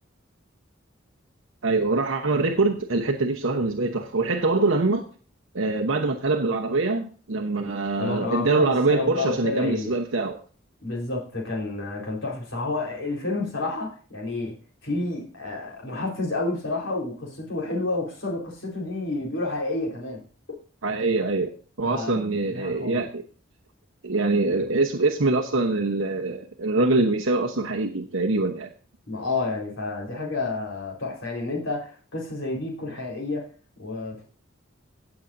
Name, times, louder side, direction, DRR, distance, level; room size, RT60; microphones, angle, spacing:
voice 1, 1.6-5.1 5.5-10.4 20.8-23.2 24.0-28.7, right 3 dB, 80° right, 2 dB, 1.0 m, -24 dB
voice 2, 8.0-9.9 10.8-14.5 14.8-20.2 20.5-20.6 21.8-23.1 29.1-33.5 33.8-34.2, left 2 dB, 70° left, -2 dB, 4.2 m, -30 dB
17.5 x 7.1 x 2.7 m, 0.39 s
head